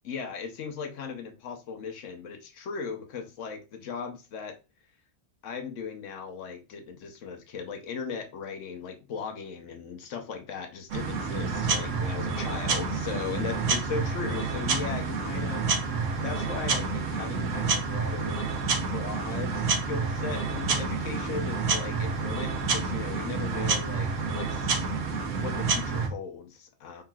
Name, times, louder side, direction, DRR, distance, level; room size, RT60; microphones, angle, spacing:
voice 1, 0.0-4.6 5.4-18.5 18.9-24.9 25.4-27.0, left 6 dB, 85° left, 1.1 m, -38 dB
sound 1, 10.9-26.1, right 4 dB, 85° right, 1.2 m, -29 dB
5.7 x 3.6 x 2.3 m
omnidirectional pair, 1.2 m